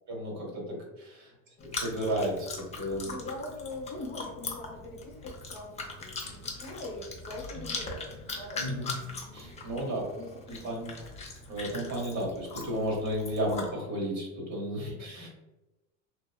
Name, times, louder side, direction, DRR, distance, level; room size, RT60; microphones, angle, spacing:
voice 1, 0.1-1.3 1.7-2.5 2.7-3.1 8.6-9.0 9.3-10.0 10.5-10.9 11.5-15.3, equal, 45° right, -1 dB, 1.1 m, -33 dB
Chewing mastication, 1.6-13.7, left 3 dB, 15° left, 0.4 m, -40 dB
voice 2, 3.0-8.9 9.7-11.1 14.7-15.3, left 2 dB, 35° left, -2 dB, 0.8 m, -43 dB
2.9 x 2.1 x 2.3 m, 1.0 s
supercardioid pair, 105°, 40 cm